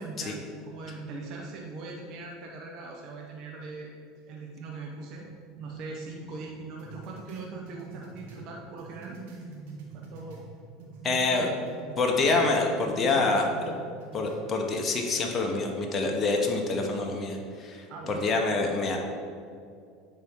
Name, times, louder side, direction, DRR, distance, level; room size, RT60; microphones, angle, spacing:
voice 1, 0.0-3.9 4.3-5.3 5.6-9.2 9.9-10.4 12.1-12.4 17.9-18.3, right 3 dB, 55° right, 0 dB, 0.9 m, -40 dB
sound 1, 6.8-10.5 10.8-12.4 12.8-14.4, right 4 dB, 75° right, 1.4 m, -44 dB
voice 2, 11.0-11.5 12.0-13.8 14.1-19.0, left 3 dB, 30° left, 1 dB, 1.0 m, -26 dB
9.6 x 4.2 x 3.7 m, 2.3 s
supercardioid pair, 105°, 0 cm